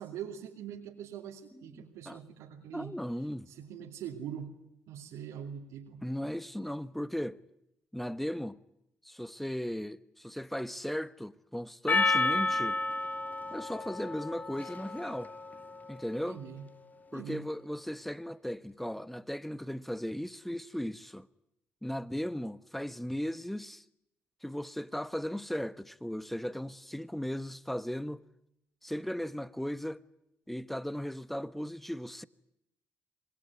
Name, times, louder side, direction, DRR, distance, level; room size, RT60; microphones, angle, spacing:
voice 1, 0.0-2.9 3.5-4.5 4.9-6.0 16.3-16.7 17.1-17.4, right 9 dB, 75° right, 2.6 m, -43 dB
voice 2, 2.7-3.5 6.0-7.4 7.9-8.6 9.0-12.8 13.5-15.3 15.9-16.4 17.1-21.3 21.8-23.8 24.4-28.2 28.8-30.0 30.5-32.2, equal, 5° left, 1.2 m, -37 dB
Percussion, 11.9-16.5, left 3 dB, 30° left, 1.7 m, -32 dB
25.5 x 21.0 x 9.7 m
hypercardioid pair, 50°, 5 cm